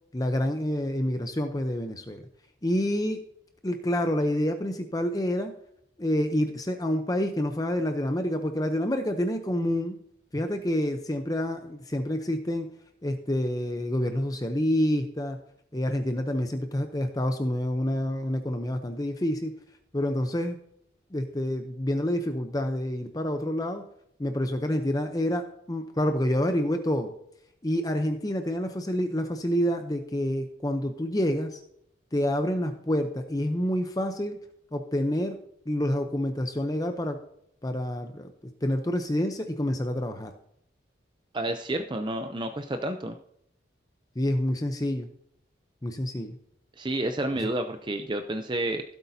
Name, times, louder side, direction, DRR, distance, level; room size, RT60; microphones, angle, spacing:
voice 1, 0.1-2.2 2.6-3.2 3.6-5.5 6.0-10.0 10.3-12.7 13.0-15.4 15.7-19.5 19.9-20.6 21.1-23.8 24.2-27.1 27.6-31.6 32.1-34.4 34.7-35.4 35.7-37.2 37.6-38.3 38.6-40.3 44.2-45.1 45.8-46.4 47.4-47.5, left 1 dB, 20° left, 6 dB, 0.6 m, -28 dB
voice 2, 41.3-43.1 46.8-48.8, right 1 dB, 25° right, 7 dB, 0.5 m, -30 dB
16.0 x 8.2 x 2.7 m, 0.72 s
head